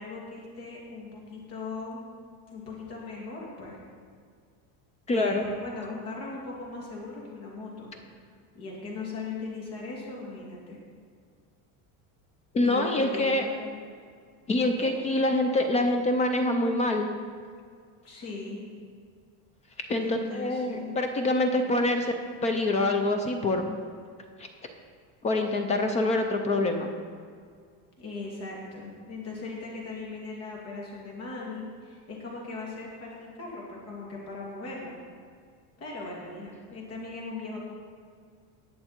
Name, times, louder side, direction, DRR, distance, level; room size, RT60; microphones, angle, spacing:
voice 1, 0.0-2.0 2.5-3.8 5.1-7.9 8.5-10.8 12.6-13.7 14.8-14.9 18.0-18.6 20.0-20.9 28.0-34.9 35.8-37.6, left 3 dB, 35° left, -3 dB, 2.7 m, -38 dB
voice 2, 5.1-5.5 12.5-13.4 14.5-17.1 19.9-22.1 22.4-23.8 25.2-26.9, left 2 dB, 20° left, 5 dB, 0.4 m, -25 dB
19.0 x 6.7 x 4.4 m, 2.1 s
cardioid pair, 175°, 42 cm